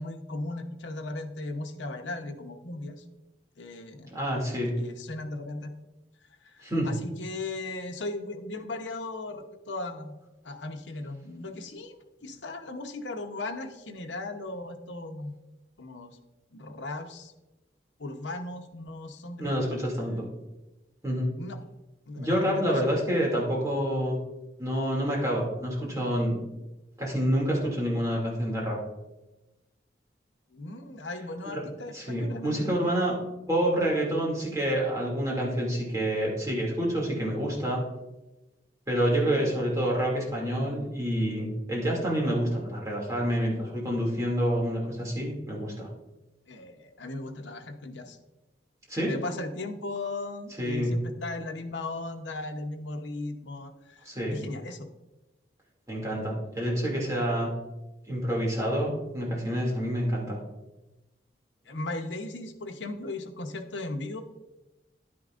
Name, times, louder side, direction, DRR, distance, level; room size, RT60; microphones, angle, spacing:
voice 1, 0.0-3.0 3.6-4.1 4.8-5.7 6.4-10.1 10.4-15.3 15.8-16.2 16.5-17.3 18.0-19.6 21.4-21.6 22.1-23.0 30.5-33.0 46.5-48.2 48.9-54.9 61.7-64.2, left 2 dB, 85° left, 5 dB, 0.9 m, -37 dB
voice 2, 4.1-4.7 6.6-6.9 19.4-20.3 21.0-21.3 22.2-24.2 24.6-26.4 27.0-28.8 31.5-31.6 31.9-33.1 33.5-37.8 38.9-45.9 48.9-49.1 50.6-50.9 54.0-54.4 55.9-57.5 58.1-60.4, equal, 20° right, -4 dB, 2.4 m, -28 dB
10.5 x 9.7 x 2.5 m, 1.0 s
head